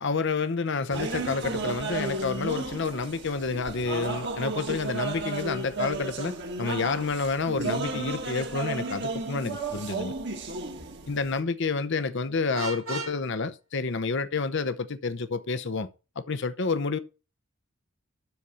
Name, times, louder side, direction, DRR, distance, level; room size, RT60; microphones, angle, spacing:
voice 1, 0.0-10.1 11.1-15.9 16.2-17.0, left 4 dB, 60° left, 0.8 m, -29 dB
sound 1, 0.9-11.4, right 3 dB, 55° right, 1.8 m, -33 dB
Vehicle horn car horn honking, 12.5-13.2, right 3 dB, 90° right, 2.9 m, -34 dB
12.5 x 4.3 x 6.9 m
head